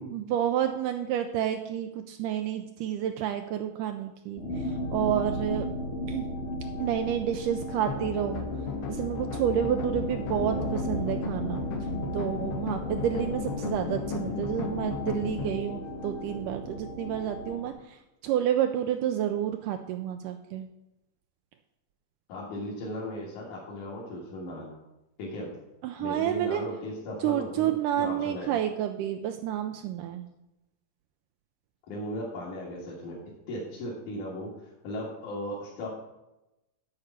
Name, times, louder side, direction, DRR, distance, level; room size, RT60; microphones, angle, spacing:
voice 1, 0.1-5.7 6.1-6.3 6.8-8.5 8.9-11.6 12.1-20.7 25.8-26.6 27.2-30.2, right 10 dB, 80° right, 6 dB, 2.0 m, -30 dB
sound 1, 4.4-17.7, left 1 dB, 35° left, 1.1 m, -35 dB
sound 2, 7.9-15.6, left 5 dB, 85° left, 2.9 m, -36 dB
voice 2, 22.3-24.8 25.2-25.5 26.0-28.6 31.9-33.2 33.5-35.9, left 1 dB, 65° left, -6 dB, 3.1 m, -37 dB
9.8 x 4.8 x 8.0 m, 0.94 s
omnidirectional pair, 3.9 m